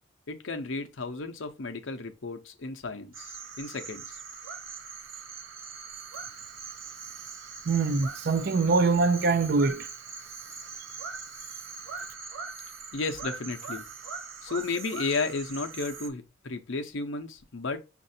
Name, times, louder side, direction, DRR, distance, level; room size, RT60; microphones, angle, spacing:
voice 1, 0.3-4.2 12.9-13.9 14.4-17.8, left 3 dB, 60° left, 0.7 m, -33 dB
sound 1, 3.1-16.1, right 5 dB, 65° right, 0.8 m, -41 dB
voice 2, 7.7-9.9, right 4 dB, 50° right, 0.4 m, -24 dB
6.4 x 2.6 x 2.6 m
head